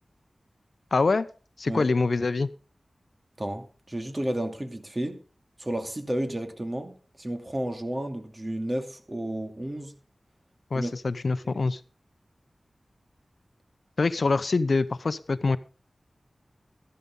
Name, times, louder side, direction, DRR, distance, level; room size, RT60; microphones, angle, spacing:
voice 1, 0.9-1.3 1.6-2.5 10.7-11.8 14.0-15.6, left 3 dB, 70° left, 0.7 m, -25 dB
voice 2, 3.4-5.2 5.6-9.9 10.7-10.9, right 1 dB, 30° right, 2.5 m, -32 dB
13.5 x 12.0 x 3.8 m
wide cardioid pair, 75°, 0 cm